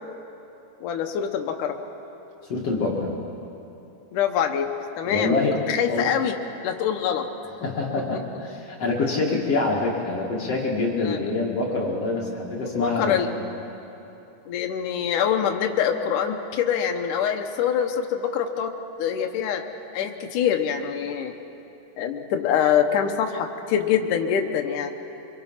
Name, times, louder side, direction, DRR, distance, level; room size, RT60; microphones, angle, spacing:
voice 1, 0.8-1.8 4.1-5.4 5.7-6.4 6.6-7.3 11.0-11.2 12.6-13.3 14.5-19.6 19.9-21.3 22.0-24.9, left 8 dB, 80° left, 4 dB, 1.9 m, -25 dB
voice 2, 2.5-3.1 5.0-5.6 5.9-6.1 7.6-13.5, left 3 dB, 45° left, -3 dB, 2.3 m, -25 dB
27.0 x 23.0 x 5.8 m, 3.0 s
omnidirectional pair, 5.1 m